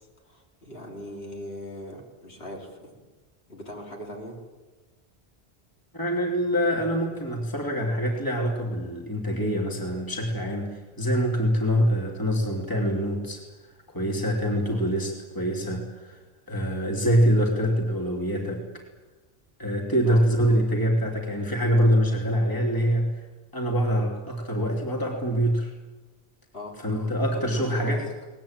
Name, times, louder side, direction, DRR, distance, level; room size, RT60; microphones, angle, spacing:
voice 1, 0.2-3.1 3.5-4.4 14.7-14.9 20.1-20.2 26.5-26.7 27.3-28.0, equal, 65° left, 0 dB, 4.3 m, -40 dB
voice 2, 5.9-13.4 13.9-16.2 16.5-18.8 19.6-23.1 23.5-25.7 26.8-28.0, equal, 20° left, 0 dB, 3.0 m, -25 dB
22.5 x 19.5 x 9.0 m, 1.3 s
omnidirectional pair, 1.1 m